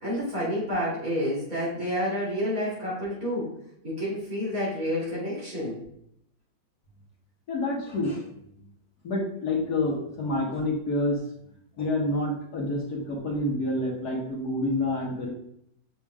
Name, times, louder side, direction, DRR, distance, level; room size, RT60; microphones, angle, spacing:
voice 1, 0.0-3.5 3.8-5.8, equal, 50° right, -7 dB, 3.3 m, -29 dB
voice 2, 7.5-8.2 9.0-11.2 11.8-15.3, left 2 dB, 60° left, -2 dB, 1.8 m, -28 dB
7.1 x 6.9 x 2.4 m, 0.73 s
omnidirectional pair, 2.0 m